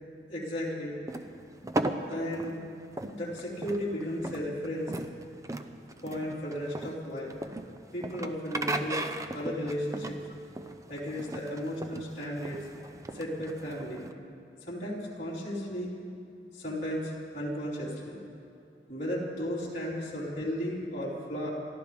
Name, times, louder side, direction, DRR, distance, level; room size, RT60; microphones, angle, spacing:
voice 1, 0.3-1.0 2.0-2.6 3.1-4.9 6.0-7.3 7.9-9.1 9.3-10.2 10.9-12.6 13.1-14.1 14.7-15.9 16.5-18.2 18.9-21.5, equal, 40° left, -7 dB, 4.1 m, -34 dB
sound 1, 1.1-14.1, right 2 dB, 20° right, 0.6 m, -37 dB
29.5 x 13.0 x 3.5 m, 2.6 s
head